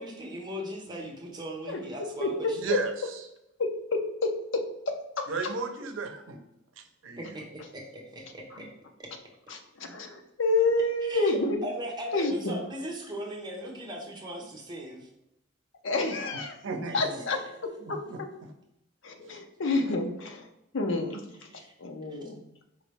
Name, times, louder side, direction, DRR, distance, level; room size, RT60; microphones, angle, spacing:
voice 1, 0.0-2.7 7.2-8.7 9.0-9.1 11.0-15.1 16.9-17.0 17.3-17.4 21.5-21.7 22.1-22.2, equal, 25° right, -1 dB, 1.0 m, -39 dB
voice 2, 2.2-2.8 3.6-5.3 8.5-8.7 9.5-11.6 12.1-12.5 15.8-16.6 16.9-18.3 19.0-20.5 20.7-21.3 21.8-22.4, left 2 dB, 75° left, 5 dB, 0.7 m, -29 dB
voice 3, 5.3-6.4 7.0-7.3 16.6-17.2 17.8-18.5 19.3-19.4, right 4 dB, 90° right, 6 dB, 0.6 m, -34 dB
5.1 x 3.0 x 3.3 m, 0.85 s
head